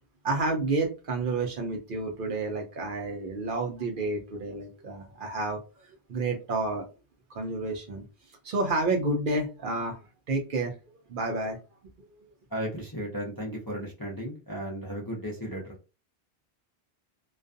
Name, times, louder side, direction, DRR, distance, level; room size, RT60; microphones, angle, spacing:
voice 1, 0.2-5.6 6.1-6.8 7.3-8.0 8.4-10.0 10.3-10.7 11.1-11.6, right 2 dB, 60° right, 3 dB, 0.6 m, -30 dB
voice 2, 12.5-15.7, equal, 25° left, -3 dB, 0.5 m, -35 dB
2.3 x 2.2 x 2.5 m, 0.30 s
omnidirectional pair, 1.1 m